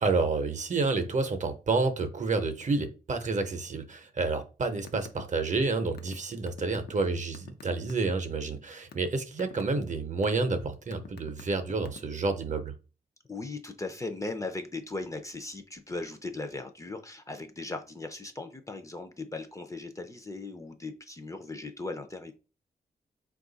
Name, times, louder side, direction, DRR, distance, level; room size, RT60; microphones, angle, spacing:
voice 1, 0.0-12.7, right 3 dB, 45° right, 0.7 m, -29 dB
phone keypad, 4.7-5.2 5.5-8.1 8.6-9.1 9.4-9.8 10.2-10.5 10.9-12.2, left 7 dB, 85° left, 0.6 m, -45 dB
voice 2, 13.3-22.3, left 3 dB, 20° left, 0.4 m, -38 dB
4.5 x 2.4 x 3.9 m
wide cardioid pair, 110°, 17 cm